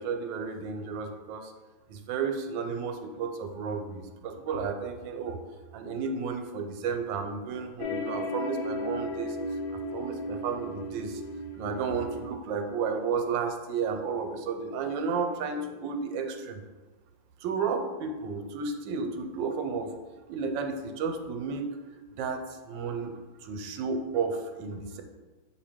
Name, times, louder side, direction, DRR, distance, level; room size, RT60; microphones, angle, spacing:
voice 1, 0.0-1.5 1.9-5.4 5.7-9.4 9.9-11.2 11.5-16.6 17.4-19.9 20.3-21.7 22.1-25.0, right 5 dB, 85° right, 6 dB, 1.3 m, -32 dB
sound 1, 7.8-12.3, left 1 dB, 80° left, 1.4 m, -35 dB
6.9 x 2.8 x 4.9 m, 1.3 s
omnidirectional pair, 2.0 m